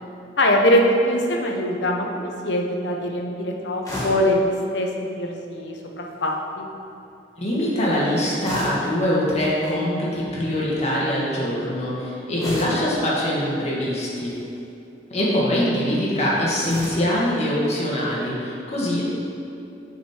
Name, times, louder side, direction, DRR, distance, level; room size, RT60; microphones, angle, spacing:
voice 1, 0.4-6.7 12.8-13.0, equal, 75° left, 1 dB, 0.9 m, -23 dB
sound 1, 3.8-4.3 6.0-6.3 8.4-8.9 9.5-9.8 12.4-12.9 14.2-14.6 16.6-17.1, equal, 20° left, 1.6 m, -32 dB
voice 2, 7.4-14.3 15.1-19.0, left 1 dB, 35° left, -6 dB, 1.8 m, -23 dB
7.3 x 5.3 x 4.4 m, 2.7 s
head